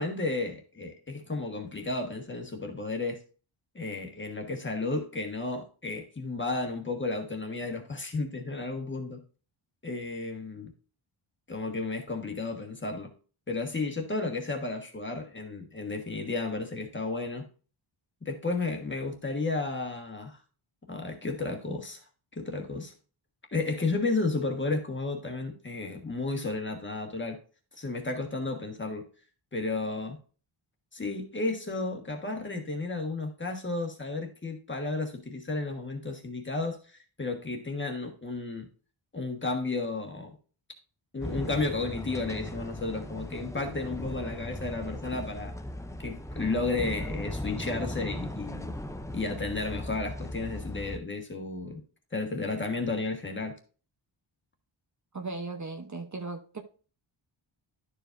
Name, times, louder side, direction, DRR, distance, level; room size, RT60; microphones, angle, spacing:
voice 1, 0.0-3.2 3.7-9.2 9.8-10.7 11.5-13.1 13.5-17.4 18.2-20.4 20.9-22.0 22.3-22.9 23.5-27.4 27.7-29.0 29.5-30.2 30.9-38.7 39.1-40.3 41.1-45.5 46.0-48.7 49.1-51.8 52.1-53.5, left 3 dB, 25° left, 1.4 m, -33 dB
sound 1, 41.2-51.0, left 1 dB, 5° left, 0.5 m, -38 dB
voice 2, 55.1-56.6, right 3 dB, 35° right, 0.9 m, -37 dB
12.0 x 4.9 x 2.6 m
wide cardioid pair, 175°, 49 cm